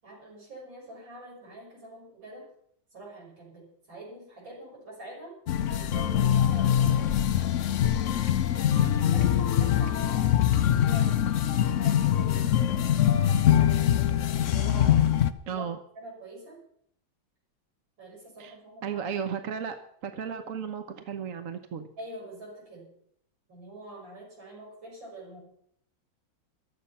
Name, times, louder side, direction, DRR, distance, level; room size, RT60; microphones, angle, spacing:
voice 1, 0.0-2.5 2.9-5.3 5.7-8.4 9.1-11.1 11.8-12.4 13.6-14.1 14.5-15.1 15.5-15.7 15.9-16.6 18.0-19.0 22.0-22.9 23.5-25.4, right 1 dB, 70° right, -4 dB, 6.8 m, -45 dB
sound 1, 5.5-15.3, left 10 dB, 85° left, 0.6 m, -23 dB
voice 2, 15.5-15.8 18.4-18.5 18.8-19.8 20.0-21.9, right 7 dB, 50° right, 8 dB, 1.2 m, -34 dB
15.0 x 12.0 x 5.7 m, 0.68 s
omnidirectional pair, 2.2 m